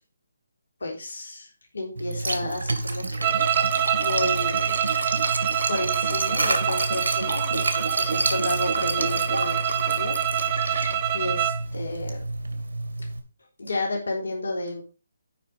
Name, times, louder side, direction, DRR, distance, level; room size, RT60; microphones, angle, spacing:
voice 1, 0.8-3.4 4.0-4.7 5.7-10.1 11.1-12.2 13.6-14.8, left 2 dB, 75° left, 0 dB, 3.5 m, -31 dB
Liquid, 2.0-13.2, right 2 dB, 75° right, 2.1 m, -29 dB
sound 1, 3.2-11.6, right 11 dB, 30° right, 0.6 m, -26 dB
9.4 x 5.5 x 5.3 m, 0.34 s
figure-of-eight pair, 150°, 0 cm